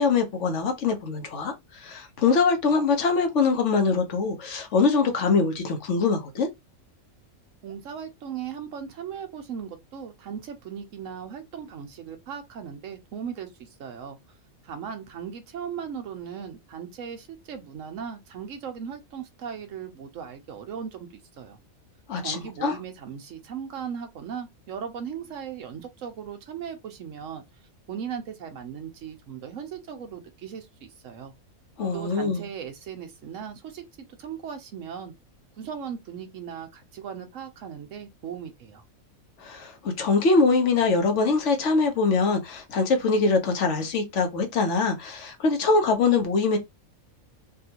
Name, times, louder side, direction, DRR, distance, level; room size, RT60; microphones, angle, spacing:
voice 1, 0.0-6.5 22.1-22.8 31.8-32.4 39.4-46.6, left 4 dB, 60° left, 1.1 m, -23 dB
voice 2, 7.6-14.2 14.6-21.1 21.4-21.6 22.2-27.4 27.9-31.3 31.9-33.8 34.2-35.1 35.6-38.8, right 7 dB, 65° right, 1.1 m, -37 dB
3.5 x 2.4 x 2.8 m
omnidirectional pair, 1.5 m